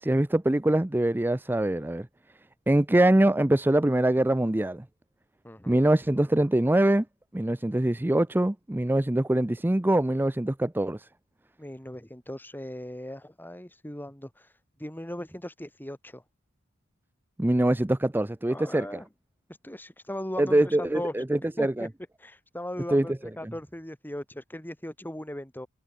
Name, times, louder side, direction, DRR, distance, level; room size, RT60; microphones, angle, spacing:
voice 1, 0.0-2.1 2.7-4.8 5.7-7.0 7.3-11.0 17.4-18.9 20.4-21.9 22.9-23.1, right 1 dB, 10° right, 0.5 m, -23 dB
voice 2, 5.4-5.8 11.6-14.5 14.8-16.2 18.5-19.1 19.6-21.2 21.6-21.9 22.2-25.7, left 1 dB, 10° left, 3.8 m, -38 dB
head